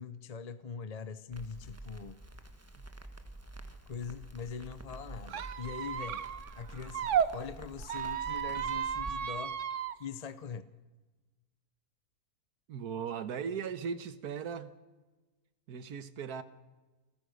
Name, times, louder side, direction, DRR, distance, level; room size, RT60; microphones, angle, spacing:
voice 1, 0.0-2.2 3.9-6.2 6.6-9.6 10.0-10.7, left 6 dB, 40° left, 0.6 m, -42 dB
Crackle, 1.3-9.1, right 2 dB, 10° right, 1.2 m, -48 dB
Squeak, 5.3-7.3 7.8-9.9, right 8 dB, 60° right, 1.1 m, -33 dB
voice 2, 12.7-14.7 15.7-16.4, right 7 dB, 90° right, 1.6 m, -38 dB
28.5 x 14.5 x 6.5 m
omnidirectional pair, 1.6 m